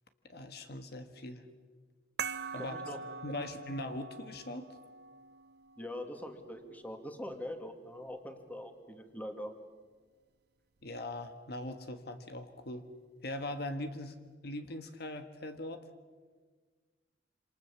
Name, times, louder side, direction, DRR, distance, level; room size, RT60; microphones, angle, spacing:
voice 1, 0.2-1.4 2.5-2.8 3.2-4.7 10.8-12.8 13.2-14.2 14.4-15.9, left 1 dB, 65° left, 8 dB, 1.5 m, -40 dB
sound 1, 2.2-7.3, right 5 dB, 65° right, 0.8 m, -44 dB
voice 2, 2.6-3.0 3.4-3.5 5.8-9.5, left 1 dB, 10° left, 5 dB, 2.4 m, -43 dB
27.5 x 26.5 x 7.1 m, 1.4 s
head